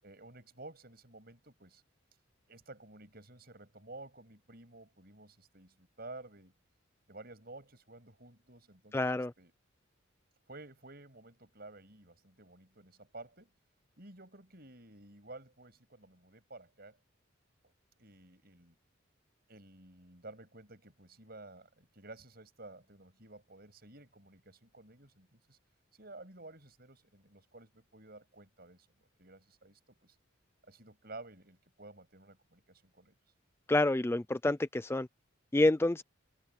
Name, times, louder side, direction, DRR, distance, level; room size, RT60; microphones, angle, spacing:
voice 1, 0.0-1.8 2.5-6.5 7.1-9.5 10.5-13.5 14.0-17.0 18.0-18.8 19.5-25.6 25.9-28.9 29.2-30.2 30.7-33.1, right 2 dB, 50° right, 7.5 m, -52 dB
voice 2, 8.9-9.3 33.7-35.1 35.5-36.0, left 2 dB, 10° left, 0.3 m, -28 dB
head